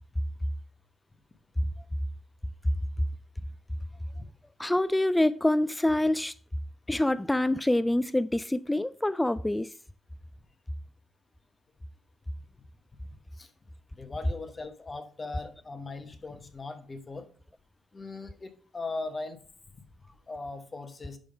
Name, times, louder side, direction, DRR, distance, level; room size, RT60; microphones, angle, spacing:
voice 1, 4.6-6.3 6.9-9.7, left 1 dB, 10° left, 0.3 m, -26 dB
voice 2, 13.9-17.3 17.9-19.4 20.3-21.2, left 3 dB, 30° left, 1.3 m, -39 dB
10.5 x 3.6 x 5.3 m
cardioid pair, 90°, 0 cm